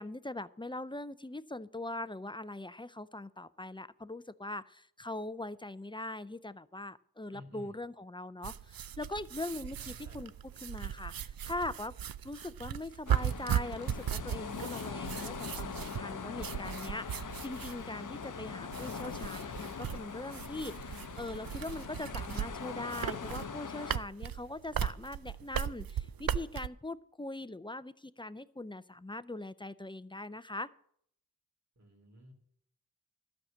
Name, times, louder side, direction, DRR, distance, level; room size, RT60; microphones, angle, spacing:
voice 1, 0.0-10.3 10.6-11.9 12.2-30.7, left 2 dB, 15° left, 16 dB, 0.4 m, -41 dB
voice 2, 7.3-7.8 9.8-10.3 18.2-18.5 31.8-32.3, left 1 dB, 45° right, 2 dB, 3.0 m, -53 dB
sound 1, 8.4-26.7, right 9 dB, 70° right, 0.5 m, -38 dB
sound 2, 13.1-24.0, left 6 dB, 60° left, 0.7 m, -42 dB
13.0 x 6.5 x 7.2 m, 0.67 s
wide cardioid pair, 55°, 36 cm